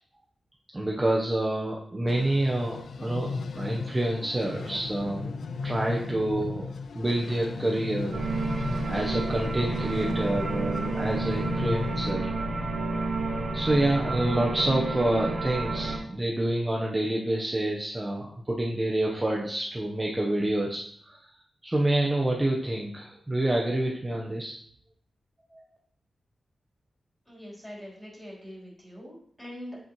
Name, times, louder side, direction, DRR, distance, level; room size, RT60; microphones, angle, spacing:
voice 1, 0.7-5.3 5.6-6.7 6.9-8.2 8.9-12.3 13.5-21.3 21.6-24.6 25.5-25.6, right 1 dB, 15° right, -2 dB, 0.9 m, -28 dB
sound 1, 2.1-12.1, left 4 dB, 80° left, 0.5 m, -36 dB
sound 2, 8.1-16.0, right 3 dB, 80° right, 2.3 m, -30 dB
voice 2, 27.3-29.8, equal, 10° left, -6 dB, 3.6 m, -43 dB
8.6 x 7.3 x 3.0 m, 0.62 s
wide cardioid pair, 145°, 0 cm